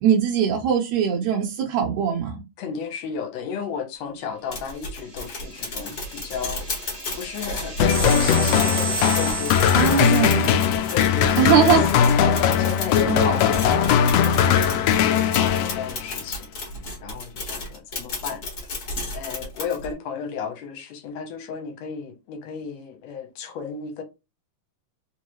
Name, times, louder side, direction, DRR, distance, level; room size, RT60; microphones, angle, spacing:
voice 1, 0.0-2.4 9.8-10.6 11.4-11.9 13.1-13.5, right 8 dB, 75° right, 2.0 m, -21 dB
voice 2, 2.6-10.4 10.9-11.7 12.3-14.9 15.3-16.5 17.0-18.4 18.8-24.0, left 6 dB, 70° left, 1.9 m, -34 dB
sound 1, 4.5-19.9, left 2 dB, 45° left, 1.3 m, -33 dB
sound 2, 4.8-10.7, right 6 dB, 55° right, 0.6 m, -33 dB
sound 3, 7.8-16.2, left 8 dB, 90° left, 1.4 m, -19 dB
4.7 x 3.0 x 3.0 m
omnidirectional pair, 3.4 m